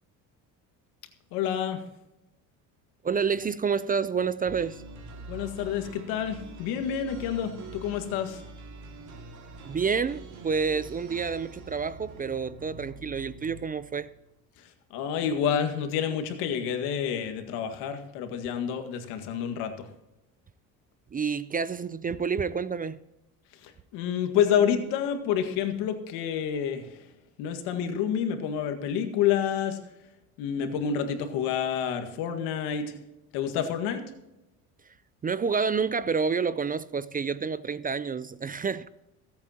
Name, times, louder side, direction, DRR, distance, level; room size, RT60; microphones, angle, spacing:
voice 1, 1.3-1.8 5.3-8.4 14.6-19.9 23.5-27.1 27.4-29.8 30.4-33.0 33.3-34.0, left 8 dB, 80° left, 1.9 m, -29 dB
voice 2, 3.0-4.8 9.7-14.1 21.1-23.0 35.2-38.9, right 5 dB, 20° right, 0.4 m, -29 dB
sound 1, 4.4-14.3, right 3 dB, 45° right, 2.3 m, -45 dB
23.5 x 8.6 x 2.9 m
supercardioid pair, 85°, 39 cm